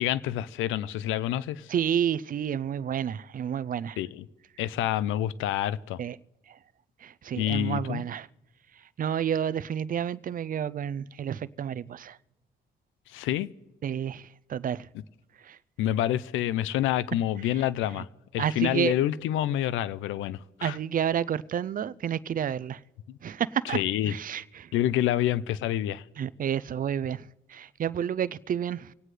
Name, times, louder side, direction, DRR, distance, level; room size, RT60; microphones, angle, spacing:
voice 1, 0.0-1.7 4.0-4.2 4.6-6.0 7.4-8.0 13.1-13.5 15.8-18.1 18.3-20.8 23.1-23.2 23.7-24.2 24.7-26.0, left 12 dB, 90° left, 0.5 m, -27 dB
voice 2, 1.7-4.0 6.0-6.2 6.5-6.6 7.0-8.3 9.0-12.2 13.8-14.9 15.4-15.6 18.0-18.1 18.4-18.9 20.6-22.8 23.2-23.8 24.0-24.7 26.2-28.9, right 9 dB, 45° right, 0.5 m, -30 dB
26.5 x 9.2 x 3.3 m
cardioid pair, 90°, 20 cm